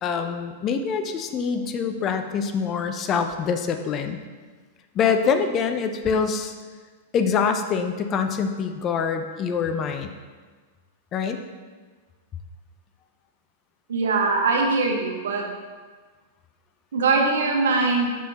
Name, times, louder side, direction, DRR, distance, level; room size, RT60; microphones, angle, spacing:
voice 1, 0.0-4.2 4.9-6.5 7.1-10.1 11.1-11.4, left 6 dB, 35° left, 7 dB, 0.5 m, -25 dB
voice 2, 13.9-15.4 16.9-18.2, right 3 dB, 70° right, 1 dB, 1.1 m, -22 dB
5.9 x 4.9 x 4.1 m, 1.4 s
figure-of-eight pair, 100°, 0 cm